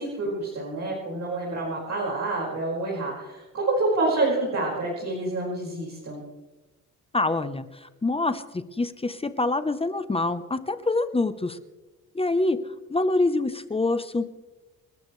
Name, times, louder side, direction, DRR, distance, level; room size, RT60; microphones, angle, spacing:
voice 1, 0.0-6.2, right 2 dB, 50° right, -5 dB, 5.2 m, -28 dB
voice 2, 7.1-11.6 12.1-12.6 12.9-14.4, left 2 dB, 15° left, 11 dB, 0.8 m, -26 dB
28.5 x 13.5 x 3.2 m, 1.1 s
cardioid pair, 120°, 35 cm